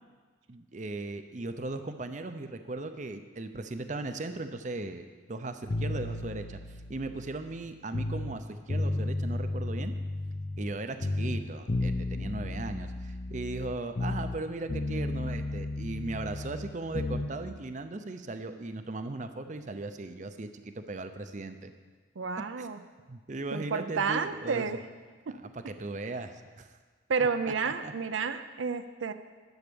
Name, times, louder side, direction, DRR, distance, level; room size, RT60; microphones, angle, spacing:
voice 1, 0.5-9.9 10.6-21.7 22.6-22.7 23.1-24.7 25.3-26.8 27.6-27.9, right 2 dB, 40° right, 9 dB, 0.6 m, -38 dB
sound 1, 5.7-8.4 8.7-10.8 11.0-14.4 14.7-17.3, left 2 dB, 40° left, 0.6 m, -33 dB
voice 2, 22.2-22.8 23.5-24.8 25.3-25.4 27.1-29.1, right 5 dB, 85° right, 10 dB, 0.5 m, -30 dB
12.0 x 7.1 x 7.0 m, 1.4 s
head